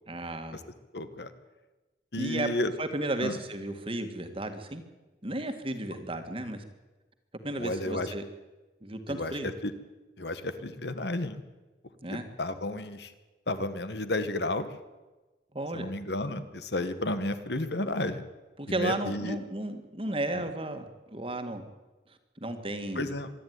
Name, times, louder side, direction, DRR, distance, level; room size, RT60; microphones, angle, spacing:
voice 1, 0.1-0.6 2.2-2.5 2.8-4.8 5.2-6.6 7.4-8.2 8.8-9.5 12.0-12.3 15.5-15.9 18.6-21.6 22.4-23.1, right 1 dB, 30° right, 8 dB, 1.9 m, -34 dB
voice 2, 0.9-1.3 2.1-2.7 3.2-3.4 7.6-8.1 9.1-9.3 9.6-9.7 10.2-11.4 12.1-13.1 13.5-14.7 15.7-18.2 18.7-19.4 22.9-23.3, left 1 dB, 65° left, 11 dB, 1.5 m, -32 dB
25.5 x 11.0 x 9.6 m, 1.2 s
head